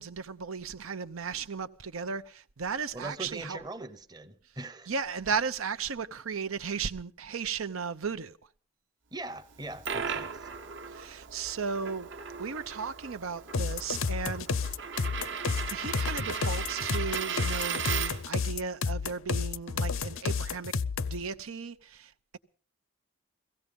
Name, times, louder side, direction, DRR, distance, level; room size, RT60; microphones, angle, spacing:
voice 1, 0.0-3.6 4.9-8.4 10.9-12.1 12.4-14.8 15.6-20.7 21.0-22.4, right 5 dB, 85° right, 0.7 m, -35 dB
voice 2, 2.9-4.9 9.1-10.5, right 2 dB, 20° right, 0.8 m, -41 dB
Coin (dropping), 9.5-18.4, right 6 dB, 60° right, 1.1 m, -37 dB
sound 1, 13.5-21.2, left 5 dB, 75° left, 0.7 m, -31 dB
17.0 x 15.5 x 5.3 m
head